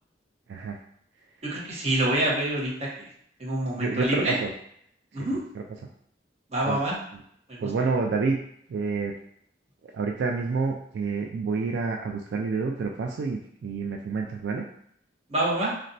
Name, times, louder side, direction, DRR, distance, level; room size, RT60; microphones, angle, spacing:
voice 1, 1.4-3.1 3.4-4.4 5.1-5.4 6.5-7.0 7.5-7.7 15.3-15.7, right 1 dB, 40° right, -4 dB, 0.8 m, -26 dB
voice 2, 3.8-4.5 6.7-6.8 7.6-8.4 8.7-9.1 9.9-14.6, right 4 dB, 75° right, 1 dB, 0.3 m, -28 dB
4.1 x 2.2 x 2.5 m, 0.69 s
head